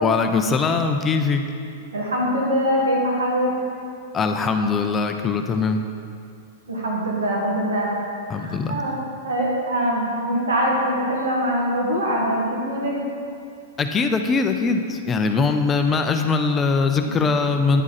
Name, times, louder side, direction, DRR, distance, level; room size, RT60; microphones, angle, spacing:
voice 1, 0.0-1.4 4.1-5.8 8.3-8.8 13.8-17.8, left 4 dB, 20° left, 6 dB, 0.5 m, -21 dB
voice 2, 1.9-3.5 6.7-7.9 8.3-8.9 9.2-13.0 17.0-17.2, equal, 80° right, -3 dB, 1.9 m, -23 dB
9.8 x 4.8 x 4.1 m, 2.4 s
hypercardioid pair, 105°, 0 cm